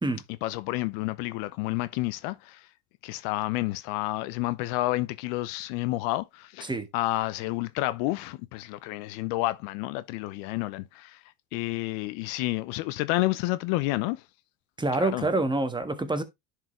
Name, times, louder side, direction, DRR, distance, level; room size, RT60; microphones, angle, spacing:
voice 1, 0.4-2.7 3.0-11.2 11.5-14.2 15.0-15.3, left 18 dB, 60° left, 0.7 m, -30 dB
voice 2, 14.8-16.2, right 2 dB, 10° right, 1.3 m, -27 dB
10.5 x 4.7 x 3.1 m
hypercardioid pair, 90°, 43 cm